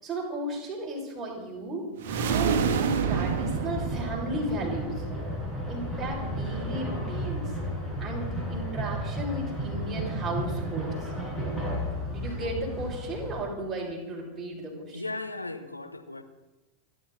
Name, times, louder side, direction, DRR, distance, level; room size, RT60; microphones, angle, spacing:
voice 1, 0.0-5.0 5.7-7.5 8.0-11.1 12.1-15.0, right 1 dB, 20° right, -2 dB, 5.9 m, -35 dB
sound 1, 2.0-4.6, right 6 dB, 50° right, 1.6 m, -27 dB
sound 2, 3.0-13.4, equal, 5° left, 5.7 m, -33 dB
voice 2, 14.9-16.2, left 2 dB, 85° left, 8 dB, 1.2 m, -37 dB
29.5 x 11.5 x 4.0 m, 1.1 s
figure-of-eight pair, 90°, 0 cm